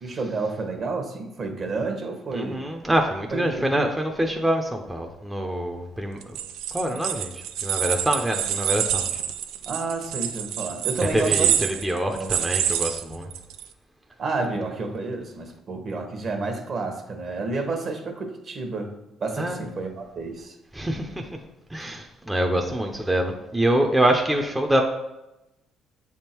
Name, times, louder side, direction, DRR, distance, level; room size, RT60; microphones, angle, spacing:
voice 1, 0.0-2.6 3.3-3.9 9.6-11.5 12.1-12.3 14.2-18.9 19.2-20.6 21.9-22.0, right 3 dB, 50° right, 5 dB, 1.2 m, -30 dB
voice 2, 2.3-6.4 6.7-9.1 11.0-13.3 19.4-19.7 20.7-21.3 21.7-24.8, right 1 dB, 10° right, 2 dB, 0.7 m, -25 dB
sound 1, 6.2-13.6, right 9 dB, 85° right, 0.4 m, -27 dB
7.3 x 3.6 x 4.5 m, 0.95 s
cardioid pair, 80°, 0 cm